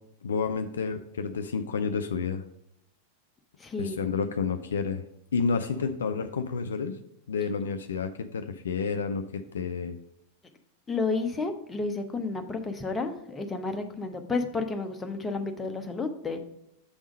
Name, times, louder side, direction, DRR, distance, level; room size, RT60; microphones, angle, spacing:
voice 1, 0.2-2.4 3.8-5.0 5.3-7.0 7.3-9.9, left 5 dB, 65° left, 8 dB, 0.4 m, -30 dB
voice 2, 3.6-4.1 10.9-16.4, left 3 dB, 15° left, 5 dB, 0.8 m, -31 dB
7.0 x 3.6 x 5.1 m, 0.80 s
figure-of-eight pair, 90°, 0 cm